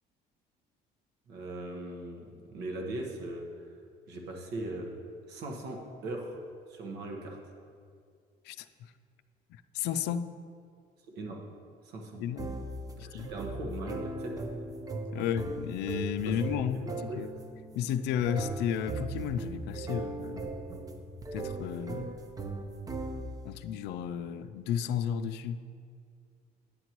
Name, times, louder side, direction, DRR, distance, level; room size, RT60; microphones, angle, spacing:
voice 1, 1.3-3.5 4.1-5.0 5.3-6.4 6.7-7.4 11.1-11.4 11.8-12.2 13.0-14.4 15.2-15.3 16.2-16.4 16.8-17.2, right 2 dB, 75° right, 1 dB, 1.3 m, -39 dB
voice 2, 9.7-10.4 12.2-12.6 13.1-13.3 15.1-16.8 17.1-17.3 17.8-20.5 21.3-22.1 23.4-25.7, left 9 dB, 85° left, 11 dB, 0.4 m, -33 dB
sound 1, 12.4-23.5, right 2 dB, 20° right, 0.7 m, -38 dB
10.0 x 9.3 x 3.0 m, 2.2 s
cardioid pair, 110°, 17 cm